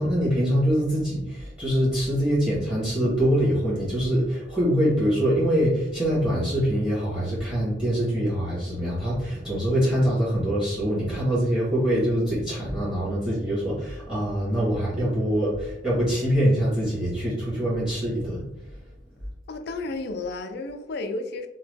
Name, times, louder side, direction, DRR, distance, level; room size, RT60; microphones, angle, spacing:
voice 1, 0.0-18.4, equal, 5° right, -7 dB, 1.3 m, -24 dB
voice 2, 19.5-21.5, left 2 dB, 60° left, 7 dB, 0.4 m, -32 dB
2.9 x 2.1 x 3.3 m, 0.89 s
head